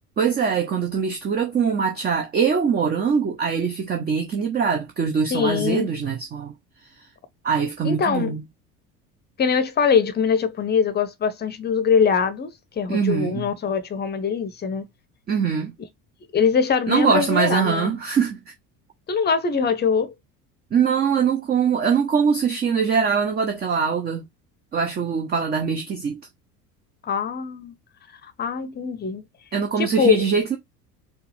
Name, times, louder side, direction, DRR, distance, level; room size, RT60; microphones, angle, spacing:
voice 1, 0.2-6.5 7.4-8.4 12.9-13.4 15.3-15.7 16.9-18.4 20.7-24.3 24.7-26.2 29.5-30.6, right 6 dB, 20° right, 0.7 m, -22 dB
voice 2, 5.3-5.9 7.8-8.3 9.4-14.9 16.3-18.0 19.1-20.1 27.0-27.7 28.4-29.2 29.8-30.2, left 6 dB, 20° left, 0.8 m, -22 dB
4.7 x 2.3 x 3.1 m
figure-of-eight pair, 65°, 47 cm